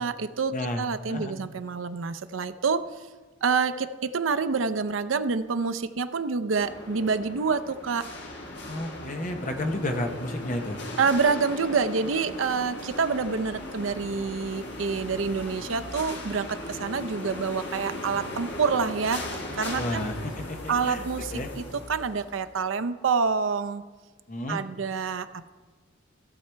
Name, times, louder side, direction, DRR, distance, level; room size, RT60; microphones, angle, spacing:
voice 1, 0.0-2.9 3.4-8.1 11.0-20.1 20.7-23.8 24.5-25.5, right 5 dB, 80° right, 12 dB, 0.6 m, -27 dB
voice 2, 0.5-1.3 8.6-10.8 19.7-21.1 21.3-21.5 24.3-24.6, left 1 dB, 40° left, 5 dB, 1.0 m, -31 dB
sound 1, 6.5-22.6, left 1 dB, 60° left, 1.4 m, -38 dB
15.5 x 6.8 x 4.5 m, 1.3 s
head